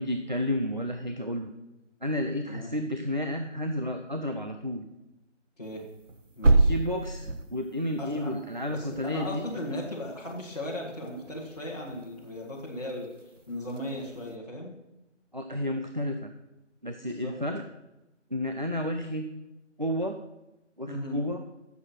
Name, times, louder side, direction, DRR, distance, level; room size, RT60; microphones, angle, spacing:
voice 1, 0.0-1.5 2.0-4.9 6.7-9.5 15.3-16.3 16.8-17.6 18.3-19.3 19.8-20.2 20.8-21.4, left 1 dB, 40° right, 5 dB, 0.5 m, -31 dB
sound 1, 5.8-14.4, right 2 dB, 80° right, 1.2 m, -30 dB
voice 2, 6.3-6.7 8.0-8.4 8.7-13.1 13.5-14.7 17.0-17.3 20.9-21.2, left 1 dB, 35° left, -7 dB, 1.7 m, -37 dB
10.5 x 7.2 x 5.7 m, 0.95 s
figure-of-eight pair, 175°, 37 cm